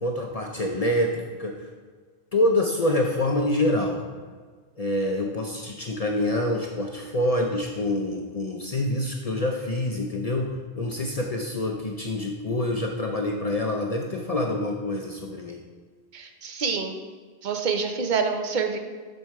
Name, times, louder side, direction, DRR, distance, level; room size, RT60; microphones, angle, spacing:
voice 1, 0.0-1.7 2.3-4.0 4.8-15.6, left 1 dB, 50° left, 1 dB, 0.5 m, -26 dB
voice 2, 16.1-16.9 17.4-18.8, right 5 dB, 50° right, 5 dB, 0.7 m, -26 dB
6.4 x 4.2 x 4.6 m, 1.5 s
omnidirectional pair, 1.1 m